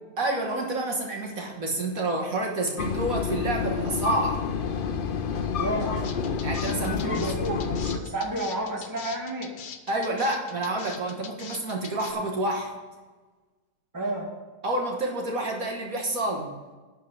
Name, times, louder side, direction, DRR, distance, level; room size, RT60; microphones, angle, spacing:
voice 1, 0.2-4.5 6.4-7.2 9.9-12.8 14.6-16.5, right 2 dB, 60° right, 1 dB, 1.8 m, -29 dB
sound 1, 2.8-8.0, left 6 dB, 55° left, 0.6 m, -29 dB
voice 2, 5.6-6.1 6.8-9.5 13.9-14.3, right 1 dB, 10° right, 0 dB, 1.7 m, -31 dB
sound 2, 6.0-12.1, left 7 dB, 90° left, 1.5 m, -42 dB
11.5 x 4.6 x 8.3 m, 1.3 s
omnidirectional pair, 1.8 m